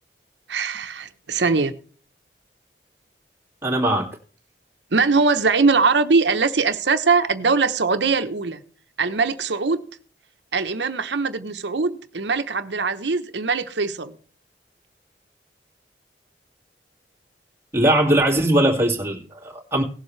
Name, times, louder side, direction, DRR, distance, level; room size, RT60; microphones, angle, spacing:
voice 1, 0.5-1.7 4.9-8.6 9.0-9.8 10.5-14.2, right 4 dB, 85° right, 1.0 m, -21 dB
voice 2, 3.6-4.1 17.7-19.8, right 1 dB, 15° right, 2.3 m, -20 dB
18.5 x 7.4 x 3.2 m
head